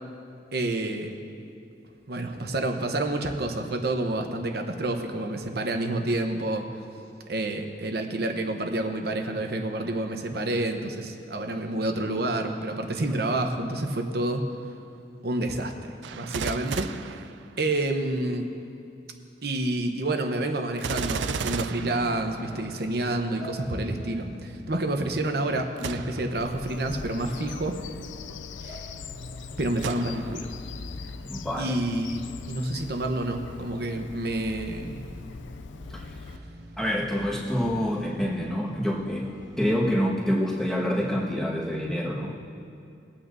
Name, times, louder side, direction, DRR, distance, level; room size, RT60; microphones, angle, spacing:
voice 1, 0.5-1.2 2.1-6.6 7.3-14.4 15.2-15.7 16.1-16.9 17.6-18.5 19.4-27.8 28.6-28.8 29.6-30.5 31.6-34.9, right 2 dB, 55° right, 4 dB, 1.0 m, -28 dB
Gunshot gunfire, 16.0-18.0 20.8-22.8 25.8-26.4 27.0-27.1 29.8-30.5 31.1-31.2, right 5 dB, 75° right, 0.4 m, -34 dB
sound 1, 21.7-39.7, equal, 20° right, 1.1 m, -46 dB
Bird vocalization bird call bird song, 26.3-36.4, left 5 dB, 80° left, 0.4 m, -41 dB
voice 2, 31.2-31.7 35.9-36.0 36.8-39.3 39.6-42.4, equal, 5° left, -5 dB, 1.5 m, -27 dB
21.0 x 8.8 x 2.7 m, 2.5 s
head